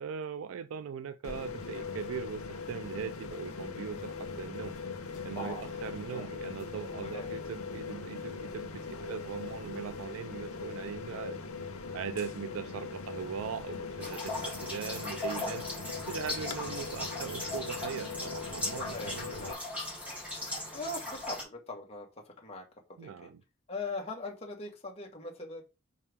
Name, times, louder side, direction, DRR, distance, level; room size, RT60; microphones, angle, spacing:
voice 1, 0.0-4.8 5.2-11.4 11.9-15.6 16.1-18.8 19.2-19.6 23.0-23.4, right 7 dB, 75° right, 0.4 m, -40 dB
sound 1, 1.2-19.5, left 4 dB, 85° left, 0.9 m, -40 dB
voice 2, 5.3-5.6 6.1-6.3 7.0-7.3 15.3-15.5 18.8-19.6 20.7-22.6 23.0-23.3 23.7-25.6, left 2 dB, 30° left, 1.5 m, -41 dB
sound 2, 14.0-21.4, left 1 dB, 5° right, 2.8 m, -38 dB
5.6 x 4.8 x 3.5 m
head